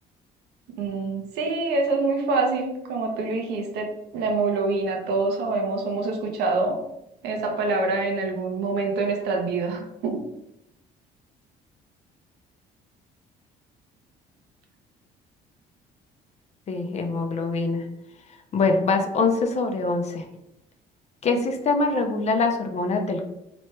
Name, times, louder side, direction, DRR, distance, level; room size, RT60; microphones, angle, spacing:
voice 1, 0.7-6.8 7.2-10.2, right 3 dB, 80° right, 2 dB, 0.8 m, -26 dB
voice 2, 16.7-17.8 18.5-20.3 21.2-23.3, left 3 dB, 40° left, 5 dB, 0.6 m, -24 dB
3.1 x 3.0 x 3.3 m, 0.85 s
cardioid pair, 110°, 17 cm